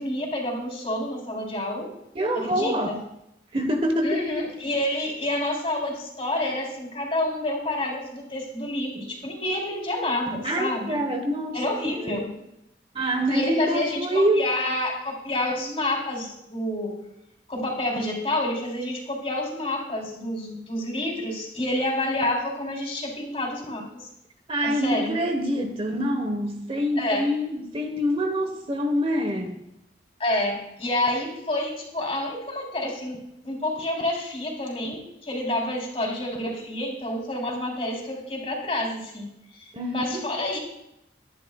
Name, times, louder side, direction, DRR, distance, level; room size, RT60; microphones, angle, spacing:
voice 1, 0.0-1.9 2.4-3.0 4.0-11.0 11.5-12.3 13.3-16.9 17.5-23.8 24.6-25.2 26.9-27.3 30.2-33.2 33.4-39.3 39.6-40.6, left 1 dB, 35° left, 0 dB, 3.5 m, -28 dB
voice 2, 2.1-3.0 3.5-4.2 10.4-11.6 12.0-12.3 12.9-14.4 24.5-29.6 39.7-40.3, equal, 30° right, 5 dB, 1.1 m, -25 dB
23.5 x 10.5 x 2.3 m, 0.82 s
head